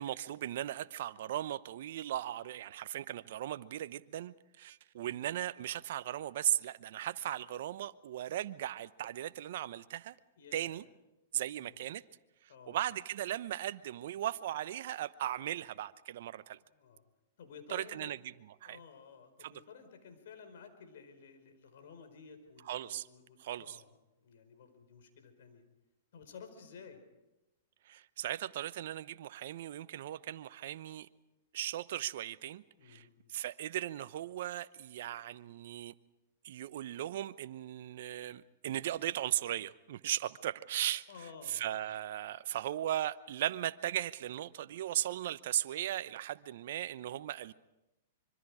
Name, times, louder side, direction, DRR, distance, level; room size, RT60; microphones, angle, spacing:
voice 1, 0.0-10.1 10.5-10.8 11.3-12.0 12.4-16.6 17.7-18.3 18.6-18.8 19.4-19.6 22.6-23.1 23.4-23.8 27.8-31.1 31.5-35.9 36.4-41.1 41.5-47.5, right 12 dB, 65° right, 0.8 m, -37 dB
voice 2, 10.4-10.8 11.6-11.7 12.5-12.8 16.7-17.0 17.4-18.1 18.6-25.6 26.1-27.0 32.8-33.2 41.1-41.7, left 6 dB, 70° left, 4.7 m, -53 dB
25.5 x 24.5 x 4.9 m
hypercardioid pair, 120°, 0 cm